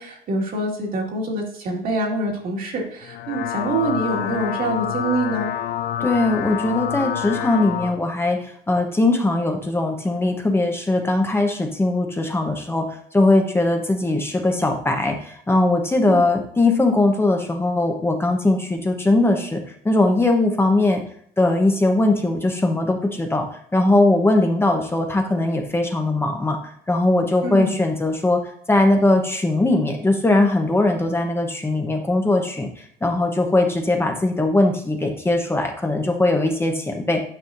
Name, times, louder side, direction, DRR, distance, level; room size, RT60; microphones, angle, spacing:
voice 1, 0.0-5.5 16.1-16.2 27.4-27.8, right 2 dB, 60° right, -1 dB, 2.1 m, -25 dB
sound 1, 3.0-8.0, left 10 dB, 70° left, 0.4 m, -27 dB
voice 2, 6.0-21.0 21.4-23.5 23.7-26.6 26.9-28.4 28.7-32.7 33.0-37.2, left 2 dB, 15° left, 3 dB, 0.9 m, -20 dB
9.2 x 5.5 x 2.6 m, 0.62 s
cardioid pair, 110°, 17 cm